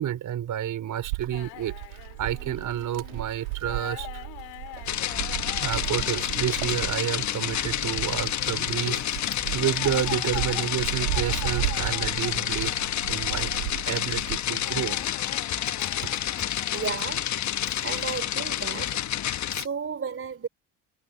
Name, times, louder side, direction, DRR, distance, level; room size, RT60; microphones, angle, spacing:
voice 1, 0.0-1.7 2.2-4.2 5.6-9.0 9.5-12.7 13.1-13.5 13.8-15.0, right 11 dB, 55° right, 4.5 m, -30 dB
Wind, 1.0-15.1 15.6-17.1, right 30 dB, 80° right, 2.4 m, -36 dB
sound 1, 1.3-19.0, left 25 dB, 70° left, 4.5 m, -43 dB
sound 2, 4.9-19.7, left 11 dB, 45° left, 1.4 m, -29 dB
voice 2, 16.7-17.3 17.8-19.0 19.5-20.5, right 6 dB, 35° right, 4.2 m, -33 dB
hypercardioid pair, 65°, 38 cm